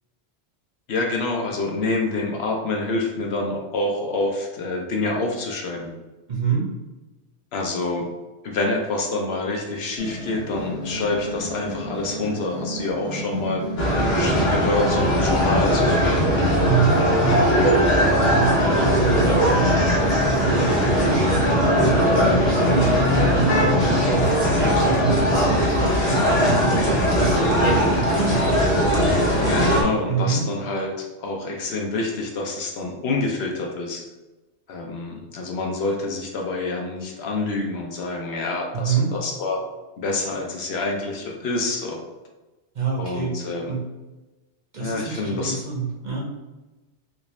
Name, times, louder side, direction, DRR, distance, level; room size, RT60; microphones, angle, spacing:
voice 1, 0.9-5.9 7.5-8.1 8.4-13.7 14.0-16.3 18.7-19.0 29.4-34.0 34.7-39.6 40.0-42.0 43.0-43.6 44.8-45.6, left 2 dB, 65° left, 1 dB, 0.8 m, -27 dB
voice 2, 6.3-6.7 16.6-17.7 18.1-23.6 24.1-28.7 30.1-30.4 38.7-39.1 42.7-43.4 43.7-43.8 44.7-46.3, right 5 dB, 50° right, -3 dB, 0.7 m, -26 dB
sound 1, 10.0-27.8, equal, 30° left, 1.2 m, -33 dB
sound 2, 13.8-29.8, equal, 90° left, 1.2 m, -19 dB
3.5 x 2.5 x 3.0 m, 1.1 s
omnidirectional pair, 1.2 m